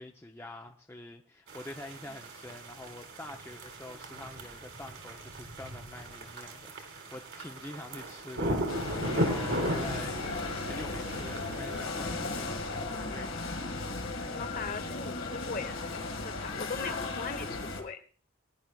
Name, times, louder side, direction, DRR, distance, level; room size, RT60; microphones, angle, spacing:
voice 1, 0.0-8.9 9.1-10.2 10.5-13.5, left 1 dB, 10° left, 2 dB, 0.6 m, -46 dB
sound 1, 1.5-12.0, equal, 60° right, 2.0 m, -37 dB
sound 2, 8.7-17.8, left 3 dB, 75° left, 1.8 m, -36 dB
voice 2, 14.3-18.0, left 4 dB, 40° left, 9 dB, 1.0 m, -40 dB
20.0 x 10.5 x 2.3 m, 0.39 s
head